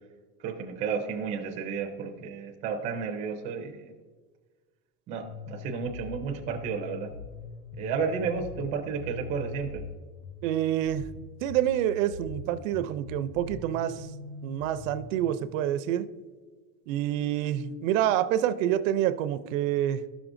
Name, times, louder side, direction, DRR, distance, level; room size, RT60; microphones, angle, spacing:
voice 1, 0.4-3.9 5.1-7.1 7.8-9.8, right 6 dB, 20° right, 2 dB, 0.4 m, -32 dB
sound 1, 5.2-15.2, left 4 dB, 85° left, 0.8 m, -42 dB
voice 2, 10.4-11.0 11.4-14.1 14.4-16.1 16.9-20.0, right 11 dB, 75° right, 12 dB, 0.5 m, -27 dB
12.0 x 6.0 x 2.5 m, 1.4 s
supercardioid pair, 170°, 40 cm